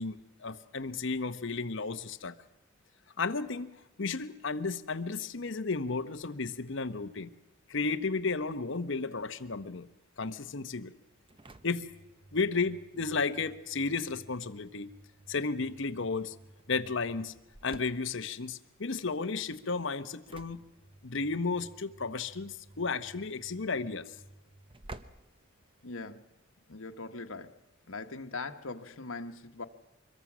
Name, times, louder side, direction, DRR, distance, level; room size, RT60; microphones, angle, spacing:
voice 1, 0.0-2.4 3.2-3.7 4.0-7.3 7.7-9.9 10.2-10.9 11.6-11.9 12.3-14.9 15.3-16.3 16.7-17.3 17.6-20.6 21.0-24.1, left 4 dB, 60° left, 12 dB, 1.0 m, -33 dB
Engine / Slam, 11.0-26.2, right 2 dB, 25° right, 0.8 m, -54 dB
voice 2, 25.8-26.3 26.7-27.5 27.9-29.6, left 3 dB, 80° left, 5 dB, 1.3 m, -41 dB
25.0 x 22.0 x 6.1 m, 0.96 s
head